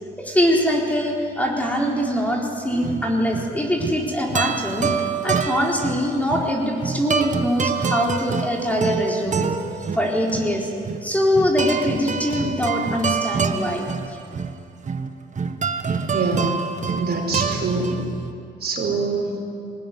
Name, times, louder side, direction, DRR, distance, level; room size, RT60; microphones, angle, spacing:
voice 1, 0.2-4.9 5.2-9.4 9.9-10.7 11.0-13.9, equal, 5° left, -1 dB, 4.1 m, -23 dB
sound 1, 2.7-18.3, right 5 dB, 35° right, 1.4 m, -27 dB
voice 2, 15.8-16.5 16.9-18.0 18.6-19.3, right 3 dB, 55° right, 2 dB, 4.9 m, -25 dB
20.0 x 20.0 x 9.5 m, 2.4 s
cardioid pair, 90°, 20 cm